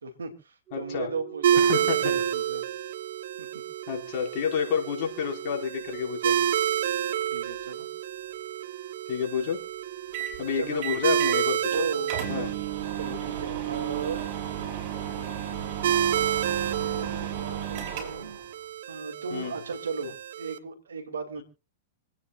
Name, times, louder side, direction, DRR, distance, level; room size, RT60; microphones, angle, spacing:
voice 1, 0.0-2.7 3.4-3.5 7.3-7.9 10.6-11.0 11.7-12.4 12.9-14.3 16.4-18.4 18.9-21.4, right 4 dB, 90° right, 6 dB, 2.7 m, -36 dB
voice 2, 0.7-1.1 1.6-2.1 3.9-6.5 9.1-9.6 10.4-11.8 12.3-12.6 19.3-19.6, left 7 dB, 50° left, 0 dB, 4.9 m, -29 dB
Organ, 0.7-11.5 12.7-12.9, right 13 dB, 20° right, 7.1 m, -43 dB
sound 1, 1.4-20.6, right 10 dB, 70° right, 1.0 m, -30 dB
sound 2, 10.1-10.4 10.8-11.4 11.7-11.8 12.1-18.4, right 10 dB, 50° right, 6.1 m, -33 dB
27.0 x 9.5 x 2.5 m, 0.30 s
hypercardioid pair, 115°, 0 cm